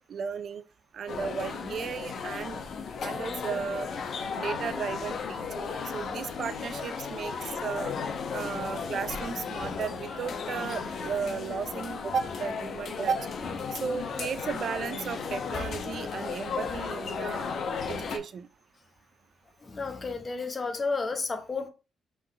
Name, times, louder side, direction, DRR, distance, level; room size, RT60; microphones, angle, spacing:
voice 1, 0.1-0.6 0.9-2.6 3.0-3.9 4.4-7.9 8.3-13.3 13.7-18.5, right 6 dB, 60° right, 0.4 m, -34 dB
sound 1, 1.1-18.2, left 5 dB, 60° left, 0.8 m, -35 dB
voice 2, 19.6-21.7, left 4 dB, 35° left, 1.0 m, -32 dB
4.0 x 3.7 x 3.2 m
cardioid pair, 95°, 0 cm